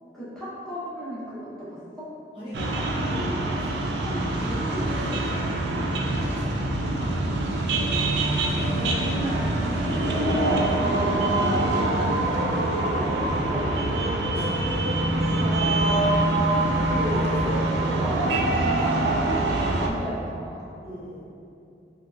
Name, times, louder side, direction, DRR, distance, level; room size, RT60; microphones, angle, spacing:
voice 1, 0.1-2.1 8.5-15.0 15.7-16.1 16.5-18.2 18.6-20.6, equal, 5° left, -12 dB, 0.7 m, -36 dB
voice 2, 2.4-7.2 14.3-15.5 16.5-17.1 20.8-21.2, equal, 30° left, -11 dB, 0.5 m, -40 dB
sound 1, 2.5-19.9, right 2 dB, 75° right, 0.3 m, -24 dB
3.1 x 2.7 x 2.4 m, 2.7 s
head